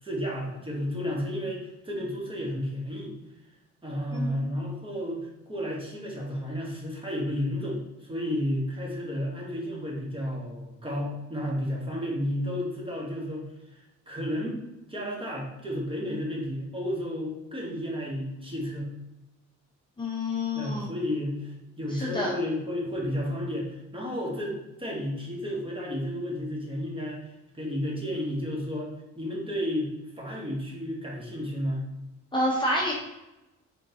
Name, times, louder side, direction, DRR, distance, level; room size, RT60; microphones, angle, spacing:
voice 1, 0.0-3.1 3.8-13.8 14.1-14.6 14.9-18.9 20.5-27.2 27.5-31.8, equal, 15° right, -3 dB, 1.3 m, -32 dB
voice 2, 20.0-20.9 22.0-22.3 32.3-32.9, left 1 dB, 15° left, -4 dB, 0.9 m, -28 dB
3.7 x 3.7 x 2.8 m, 0.96 s
cardioid pair, 90°, 30 cm